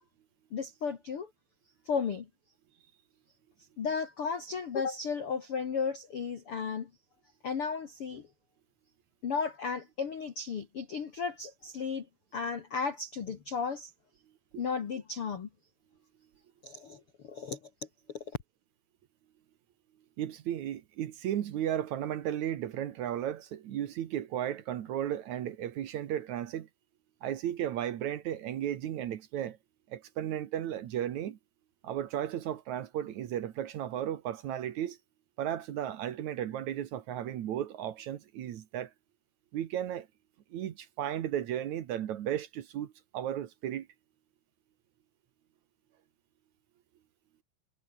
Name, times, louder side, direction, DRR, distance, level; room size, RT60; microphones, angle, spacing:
voice 1, 0.5-1.3 1.8-2.3 3.8-6.9 7.4-8.3 9.2-12.1 12.3-13.9 14.6-15.5 16.6-17.6, left 5 dB, 75° left, 1.2 m, -34 dB
voice 2, 20.2-26.7 27.2-29.6 29.9-31.4 31.8-35.0 35.4-38.9 39.5-40.1 40.5-43.9, right 11 dB, 75° right, 1.7 m, -34 dB
omnidirectional pair, 5.4 m